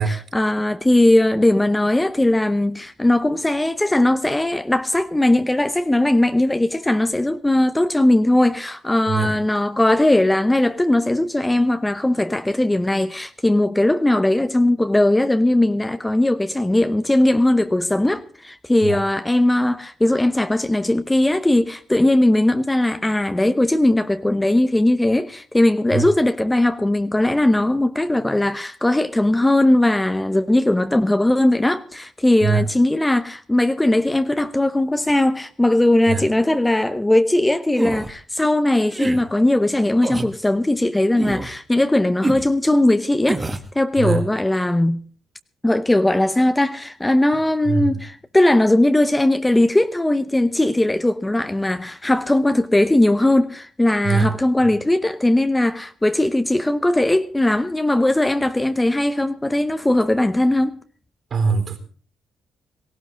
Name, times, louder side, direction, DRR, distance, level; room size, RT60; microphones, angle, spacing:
voice 1, 0.0-43.4 43.7-45.0 45.6-60.8, left 1 dB, 10° left, 0.8 m, -19 dB
voice 2, 9.1-9.4 18.8-19.0 25.9-26.1 32.4-32.6 36.1-36.2 44.0-44.2 47.7-48.0 54.0-54.3 61.3-61.8, right 5 dB, 50° right, 4.0 m, -21 dB
sound 1, 37.7-38.1 38.9-39.2 40.0-40.3 41.2-41.5 42.2-42.5 43.3-43.7, right 2 dB, 20° right, 1.6 m, -25 dB
17.5 x 16.5 x 3.8 m
cardioid pair, 90°, 0 cm